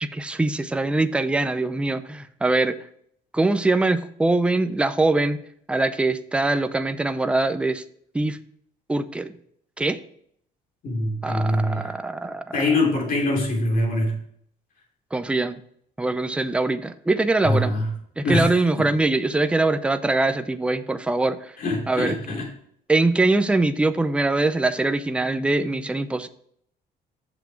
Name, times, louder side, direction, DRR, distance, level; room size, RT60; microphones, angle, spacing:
voice 1, 0.0-2.8 3.3-5.4 5.7-7.8 8.1-8.4 8.9-9.3 9.8-10.0 11.2-12.6 15.1-15.6 16.0-17.8 18.2-21.5 21.9-22.2 22.9-26.3, right 2 dB, 5° right, 9 dB, 0.5 m, -23 dB
voice 2, 10.8-11.9 12.5-14.2 17.4-17.9 18.2-18.9 21.6-22.5, left 1 dB, 55° left, 0 dB, 3.1 m, -23 dB
7.0 x 5.8 x 4.7 m, 0.65 s
cardioid pair, 110°, 17 cm